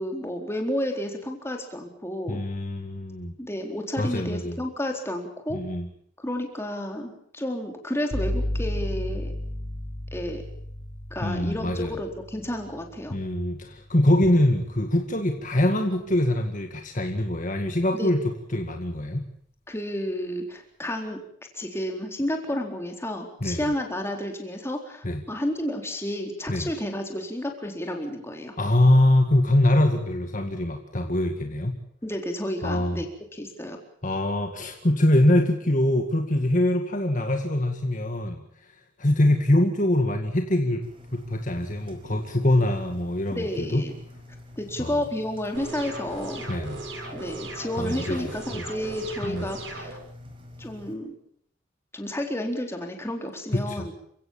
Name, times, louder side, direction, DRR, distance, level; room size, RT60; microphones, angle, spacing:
voice 1, 0.0-2.4 3.4-5.6 6.2-9.3 10.1-10.4 11.1-13.2 17.9-18.1 19.7-21.2 21.5-28.6 32.0-33.1 33.3-33.8 43.3-43.9 44.6-46.4 47.1-50.0 50.6-51.1 51.9-53.9, left 1 dB, 15° left, 3 dB, 4.1 m, -31 dB
voice 2, 2.3-3.3 4.0-4.6 5.5-5.9 11.2-11.9 13.1-18.2 18.5-19.3 23.4-23.7 25.0-25.2 26.5-26.7 28.6-31.8 32.6-33.0 34.0-38.4 39.0-40.8 41.1-43.8 44.8-45.0 46.5-46.8 47.8-48.6 49.2-49.5 53.5-53.9, left 1 dB, 40° left, 4 dB, 2.0 m, -23 dB
sound 1, 8.1-15.8, left 1 dB, 60° left, 6.8 m, -34 dB
Engine, 40.8-50.9, left 1 dB, 30° right, 5.0 m, -46 dB
sound 2, 45.5-49.9, right 2 dB, 75° right, 7.8 m, -38 dB
29.5 x 16.5 x 7.3 m, 0.68 s
head